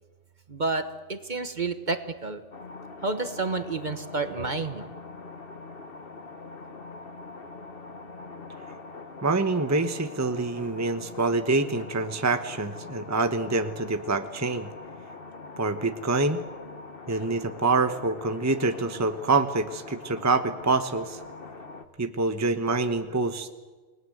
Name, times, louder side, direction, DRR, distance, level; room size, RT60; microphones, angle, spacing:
voice 1, 0.5-2.4 3.0-4.9, right 3 dB, 40° right, 9 dB, 1.4 m, -30 dB
sound 1, 2.5-21.8, left 3 dB, 50° left, 1.6 m, -43 dB
voice 2, 9.2-14.7 15.6-16.4 17.1-21.2 22.0-23.5, right 3 dB, 15° right, 8 dB, 1.0 m, -26 dB
29.0 x 20.0 x 8.0 m, 1.3 s
omnidirectional pair, 1.3 m